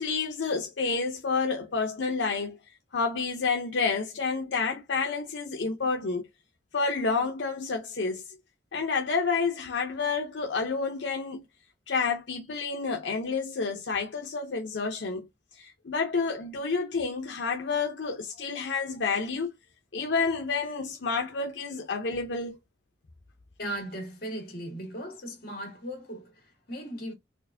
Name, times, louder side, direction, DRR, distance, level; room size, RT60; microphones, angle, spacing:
voice 1, 0.0-2.6 2.9-6.3 6.7-8.2 8.7-11.4 11.9-15.3 15.5-19.5 19.9-22.6, left 4 dB, 85° left, 0.6 m, -29 dB
voice 2, 23.6-27.1, right 1 dB, 55° left, 2.0 m, -37 dB
4.4 x 2.5 x 2.5 m
head